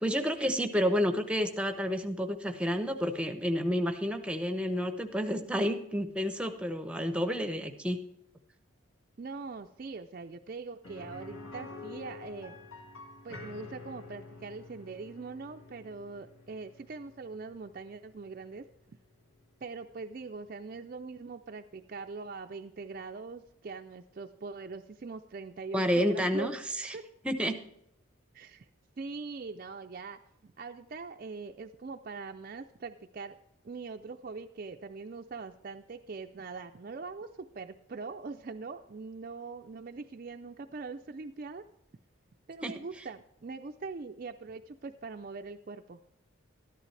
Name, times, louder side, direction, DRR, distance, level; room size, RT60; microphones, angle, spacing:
voice 1, 0.0-8.0 25.7-26.9 27.2-27.6 42.6-42.7, equal, 5° right, 7 dB, 0.7 m, -30 dB
voice 2, 9.2-12.6 13.2-18.6 19.6-26.5 26.9-27.0 28.3-28.7 29.0-33.4 33.6-41.6 42.5-46.0, right 4 dB, 40° right, 5 dB, 0.4 m, -42 dB
sound 1, 10.8-20.6 20.9-21.0 23.5-23.6, left 3 dB, 70° left, 1.9 m, -49 dB
13.0 x 11.0 x 3.3 m, 0.77 s
head